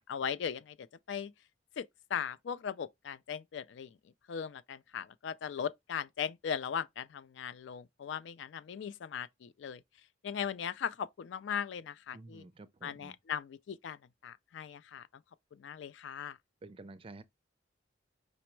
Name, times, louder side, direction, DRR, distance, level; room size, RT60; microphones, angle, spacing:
voice 1, 0.0-1.3 1.8-1.9 2.1-3.9 4.3-9.8 10.2-12.4 12.8-15.1 15.5-16.4, left 7 dB, 65° left, 0.3 m, -38 dB
voice 2, 12.1-13.1 16.6-17.2, right 2 dB, 30° right, 0.4 m, -50 dB
5.2 x 2.0 x 4.4 m
head